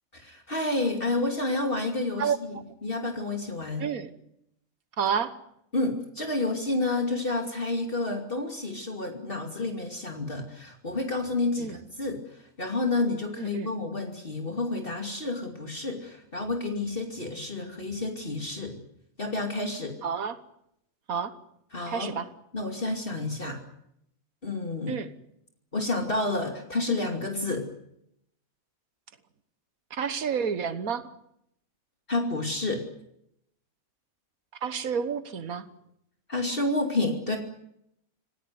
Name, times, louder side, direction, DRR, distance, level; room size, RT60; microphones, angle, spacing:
voice 1, 0.1-3.9 5.7-18.8 19.2-20.0 21.7-22.2 22.5-23.6 24.4-25.0 25.7-27.7 32.1-32.8 36.3-37.4, left 2 dB, 40° left, 3 dB, 2.9 m, -30 dB
voice 2, 5.0-5.3 11.6-11.8 13.4-13.7 20.0-20.4 21.1-21.3 21.9-22.3 24.9-25.1 29.9-31.0 34.6-35.7, right 7 dB, 90° right, 11 dB, 1.7 m, -29 dB
26.5 x 17.5 x 9.5 m, 0.76 s
omnidirectional pair, 1.5 m